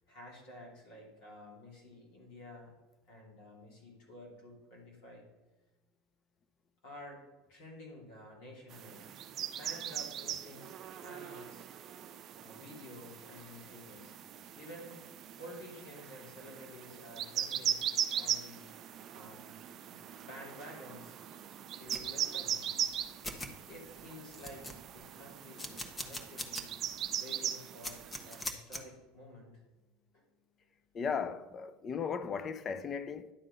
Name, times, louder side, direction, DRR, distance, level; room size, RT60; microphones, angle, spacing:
voice 1, 0.1-2.7 3.1-5.2 6.8-7.2 7.5-9.1 9.5-11.7 12.4-14.2 14.5-15.0 15.3-17.8 18.2-18.7 19.1-19.6 19.8-21.2 21.7-22.8 23.7-26.7 27.2-29.6 30.1-30.2, left 1 dB, 65° left, 2.9 m, -51 dB
sound 1, 8.7-28.5, right 9 dB, 45° right, 0.5 m, -40 dB
sound 2, 21.9-22.1 22.9-23.0 23.2-23.5 24.0-24.1 24.3-25.0 25.6-26.6 27.0-27.1 27.8-28.8, left 1 dB, 15° left, 1.2 m, -40 dB
voice 2, 30.9-33.3, left 6 dB, 35° left, 0.6 m, -36 dB
11.0 x 3.7 x 6.8 m
hypercardioid pair, 80°, 0 cm